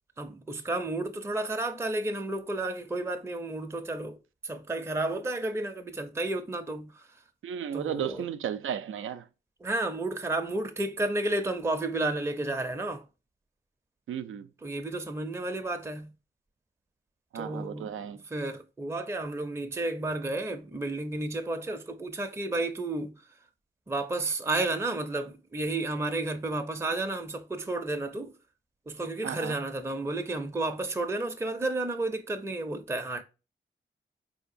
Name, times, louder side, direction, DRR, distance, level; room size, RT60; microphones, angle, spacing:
voice 1, 0.2-4.2 4.4-7.1 7.7-8.2 9.6-13.0 14.6-16.1 17.3-17.9 18.3-23.2 23.9-28.3 28.9-33.2, right 2 dB, 15° right, 0.5 m, -32 dB
voice 2, 7.4-9.3 14.1-14.5 17.3-18.2 29.2-29.6, right 9 dB, 90° right, 0.4 m, -34 dB
4.5 x 2.8 x 2.5 m
cardioid pair, 70°, 20 cm